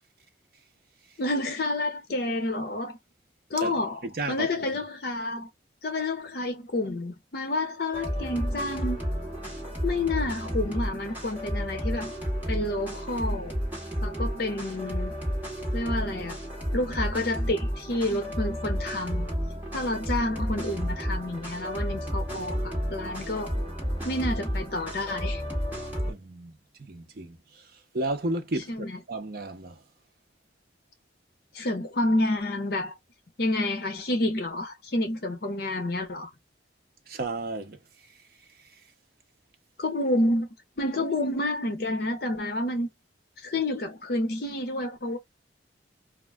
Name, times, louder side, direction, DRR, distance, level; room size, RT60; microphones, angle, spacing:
voice 1, 1.2-3.0 3.5-5.5 5.8-9.0 9.8-12.1 12.5-13.5 14.0-15.1 15.7-16.4 16.7-19.3 19.7-22.6 22.9-23.6 24.0-25.4 28.7-29.0 31.5-32.9 33.4-36.3 39.8-40.5 40.8-42.9 43.4-45.2, left 1 dB, 60° left, 0.7 m, -29 dB
voice 2, 4.0-4.5 26.1-26.5 26.8-27.6 27.9-29.8 37.1-37.8, right 2 dB, 55° right, 0.7 m, -33 dB
sound 1, 7.9-26.1, equal, 10° right, 1.3 m, -31 dB
2.4 x 2.1 x 3.3 m
head